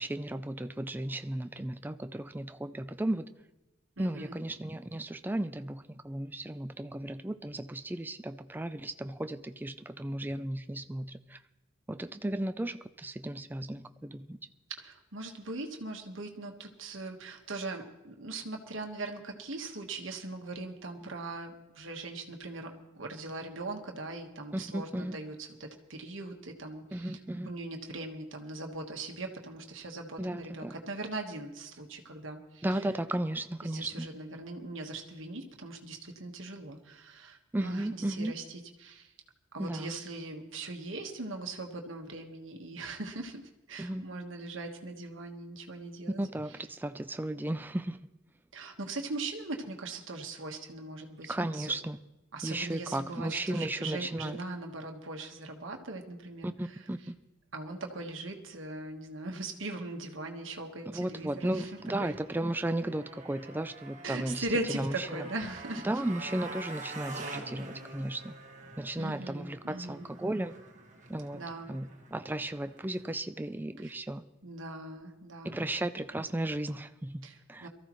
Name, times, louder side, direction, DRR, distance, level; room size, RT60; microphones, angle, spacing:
voice 1, 0.0-3.3 4.0-11.4 11.9-14.4 24.5-25.2 26.9-27.5 30.2-30.7 32.6-34.1 37.5-38.3 39.6-40.0 43.8-44.0 46.2-48.0 51.3-52.0 52.4-54.4 56.4-57.1 60.9-64.4 64.7-65.2 65.8-68.3 68.8-70.5 71.1-71.4 71.7-74.2 75.4-77.7, right 1 dB, 10° right, 10 dB, 0.4 m, -35 dB
voice 2, 4.0-4.4 14.7-27.2 27.5-32.9 33.6-39.1 39.5-43.4 43.7-46.2 46.5-46.6 48.5-51.7 52.3-57.1 57.5-62.2 64.0-66.0 69.0-70.1 71.3-71.8 73.8-74.0 74.4-75.6 77.2-77.7, right 2 dB, 65° right, 3 dB, 1.4 m, -40 dB
Motorcycle, 61.0-73.1, right 2 dB, 35° right, 1.6 m, -47 dB
22.5 x 14.0 x 3.1 m, 1.0 s
head